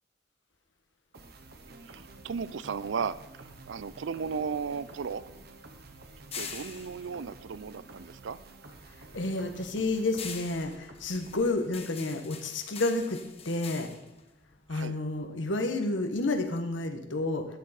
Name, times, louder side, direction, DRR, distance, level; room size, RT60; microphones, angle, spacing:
sound 1, 1.1-11.7, right 2 dB, 60° right, 1.1 m, -51 dB
voice 1, 1.8-5.2 6.3-8.4 14.7-15.0, right 6 dB, 85° right, 17 dB, 0.5 m, -35 dB
sound 2, 3.9-8.5 8.8-15.2, left 6 dB, 35° left, 1.0 m, -45 dB
voice 2, 9.1-13.2 13.4-13.9 14.7-17.5, left 2 dB, 85° left, 6 dB, 1.2 m, -30 dB
12.0 x 9.0 x 4.3 m, 0.98 s
head